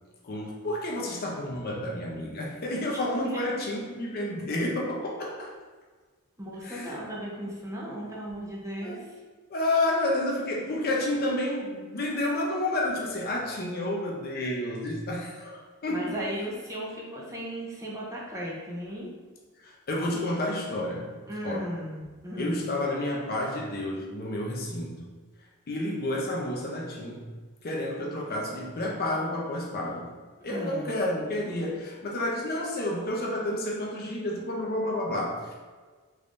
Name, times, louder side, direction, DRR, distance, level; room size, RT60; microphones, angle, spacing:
voice 1, 0.2-5.5 6.6-6.9 8.8-9.0 9.5-16.0 19.6-21.1 21.4-21.7 22.4-25.1 25.7-27.2 27.6-30.1 30.4-35.6, left 1 dB, 45° left, -1 dB, 0.6 m, -30 dB
voice 2, 6.4-9.2 15.9-19.1 21.3-22.6 30.5-30.9, equal, 15° right, -4 dB, 0.6 m, -36 dB
3.5 x 3.2 x 2.5 m, 1.4 s
head